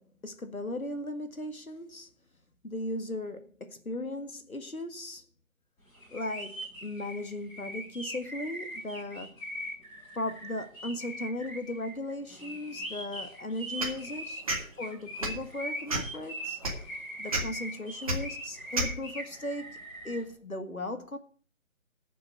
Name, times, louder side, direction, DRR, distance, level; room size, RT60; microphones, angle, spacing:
voice 1, 0.0-2.1 2.6-5.2 6.1-9.3 10.2-14.4 14.8-16.6 17.2-19.8 20.0-21.2, left 1 dB, 80° left, 1.8 m, -37 dB
sound 1, 5.9-20.2, equal, 5° left, 1.9 m, -41 dB
sound 2, 13.8-14.0 14.5-14.6 15.2-15.4 15.9-16.2 16.6-16.8 17.3-17.4 18.1-18.2 18.7-18.9, right 2 dB, 25° right, 1.9 m, -29 dB
11.0 x 6.6 x 6.4 m
figure-of-eight pair, 155°, 41 cm